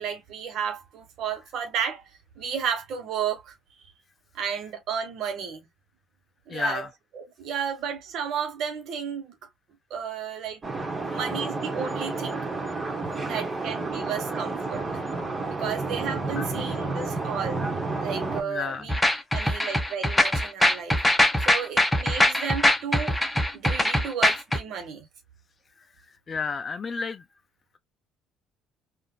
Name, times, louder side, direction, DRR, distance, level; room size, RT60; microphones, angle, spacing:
voice 1, 0.0-2.0 2.4-3.6 4.3-5.7 6.5-6.9 7.1-9.3 9.9-10.6 11.1-12.4 13.2-14.8 15.5-17.7 18.0-19.0 19.3-21.0 21.4-23.2 23.5-25.1, right 7 dB, 65° right, 1.1 m, -32 dB
voice 2, 6.5-6.9 11.1-11.2 16.3-16.6 18.4-18.8 26.3-27.2, left 5 dB, 35° left, 0.5 m, -31 dB
sound 1, 10.6-18.4, right 3 dB, 30° right, 1.4 m, -30 dB
sound 2, 18.9-24.6, left 1 dB, 10° left, 1.1 m, -22 dB
3.8 x 2.5 x 2.2 m
supercardioid pair, 70°, 0 cm